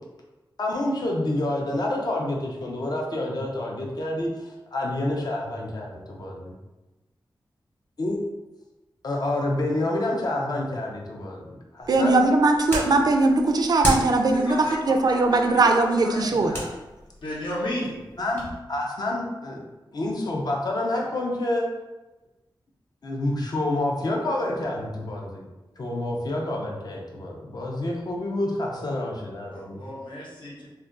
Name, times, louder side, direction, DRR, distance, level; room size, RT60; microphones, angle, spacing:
voice 1, 0.6-6.6 8.0-8.2 9.0-12.2 16.4-16.7 18.2-19.7 19.9-21.7 23.0-25.5 25.8-29.8, left 1 dB, 50° left, -1 dB, 0.5 m, -28 dB
sound 1, 11.8-18.6, equal, 25° left, 1.0 m, -35 dB
voice 2, 11.9-16.6, right 2 dB, 50° right, 4 dB, 0.3 m, -20 dB
voice 3, 14.3-16.4 17.2-18.0 29.5-30.7, left 1 dB, 75° left, -6 dB, 0.9 m, -34 dB
2.3 x 2.2 x 3.7 m, 1.1 s
wide cardioid pair, 125°, 9 cm